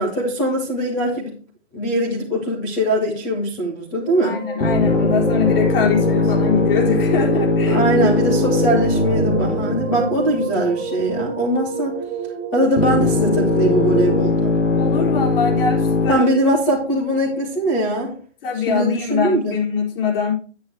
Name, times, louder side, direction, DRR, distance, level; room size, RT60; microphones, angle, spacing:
voice 1, 0.0-1.3 1.7-4.4 7.7-11.9 12.5-14.5 16.1-18.1 18.7-19.5, right 1 dB, 5° left, -3 dB, 0.3 m, -21 dB
sound 1, 4.0-14.2, right 6 dB, 20° right, 1.3 m, -29 dB
voice 2, 4.2-7.8 14.7-16.3 18.4-20.3, left 6 dB, 50° left, -2 dB, 4.4 m, -23 dB
sound 2, 4.6-10.9 12.8-16.1, left 3 dB, 85° left, 2.0 m, -20 dB
10.0 x 9.3 x 3.1 m, 0.40 s
figure-of-eight pair, 130°, 36 cm